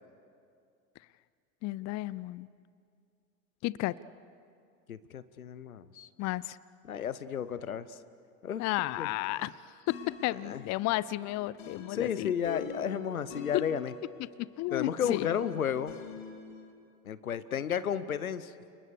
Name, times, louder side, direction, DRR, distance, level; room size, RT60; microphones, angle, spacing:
voice 1, 1.6-2.5 3.6-4.0 6.2-6.6 8.6-12.3 13.5-13.6 14.6-15.3, left 18 dB, 40° left, 19 dB, 0.6 m, -32 dB
voice 2, 4.9-6.1 6.9-8.0 8.4-8.6 9.0-9.1 10.5-10.6 11.9-13.9 14.7-15.9 17.0-18.5, left 8 dB, 80° left, 16 dB, 1.0 m, -33 dB
sound 1, 9.9-16.7, left 6 dB, 60° left, 3.2 m, -46 dB
30.0 x 29.0 x 6.7 m, 2.3 s
figure-of-eight pair, 65°, 42 cm